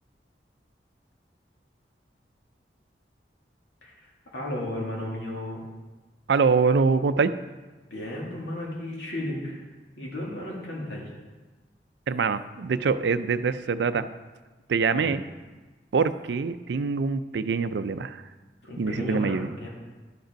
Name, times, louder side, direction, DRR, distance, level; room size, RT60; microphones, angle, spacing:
voice 1, 4.3-5.6 7.9-9.6 10.0-11.1 14.9-15.2 18.6-19.7, left 1 dB, 85° left, -3 dB, 2.4 m, -34 dB
voice 2, 6.3-7.3 12.1-14.1 14.7-15.2 15.9-18.2 18.8-19.5, right 5 dB, 80° right, 13 dB, 0.4 m, -24 dB
11.5 x 5.2 x 5.1 m, 1.3 s
head